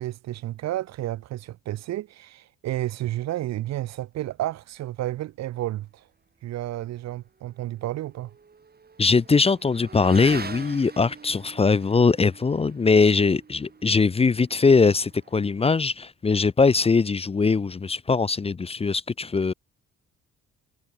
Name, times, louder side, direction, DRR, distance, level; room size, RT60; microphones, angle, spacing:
voice 1, 0.0-6.0 6.4-8.3, right 14 dB, 60° right, 0.5 m, -31 dB
Motorcycle / Accelerating revving vroom, 7.3-16.0, right 5 dB, 30° right, 2.5 m, -44 dB
voice 2, 9.0-19.5, left 4 dB, 20° left, 0.5 m, -21 dB
cardioid pair, 90°, 30 cm